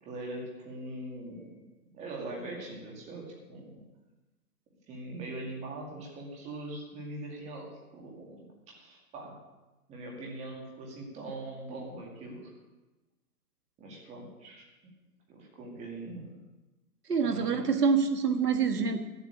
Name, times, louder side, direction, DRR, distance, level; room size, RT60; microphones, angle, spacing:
voice 1, 0.0-1.5 1.9-3.8 4.9-9.4 9.9-12.5 13.8-14.6 15.3-16.3 17.2-17.7, right 2 dB, 15° right, -2 dB, 2.3 m, -42 dB
voice 2, 17.1-19.0, right 5 dB, 85° right, 6 dB, 1.6 m, -26 dB
12.0 x 8.2 x 8.5 m, 1.1 s
hypercardioid pair, 160°, 46 cm